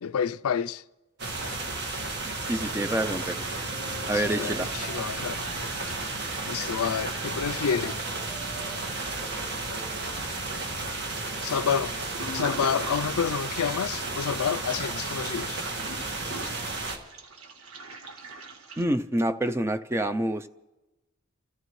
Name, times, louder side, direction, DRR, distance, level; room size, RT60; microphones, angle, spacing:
voice 1, 0.0-0.8 4.1-5.4 6.5-8.0 11.4-11.9 12.3-15.6, left 7 dB, 90° left, 0.4 m, -29 dB
sound 1, 1.2-17.0, right 3 dB, 50° right, 1.7 m, -33 dB
voice 2, 2.5-3.4 4.1-4.7 18.8-20.5, right 1 dB, 10° right, 0.5 m, -27 dB
Toilet flush, 2.5-18.8, right 2 dB, 85° right, 1.7 m, -44 dB
Wind instrument woodwind instrument, 2.6-10.1, right 4 dB, 35° right, 2.4 m, -47 dB
29.0 x 14.5 x 3.2 m
head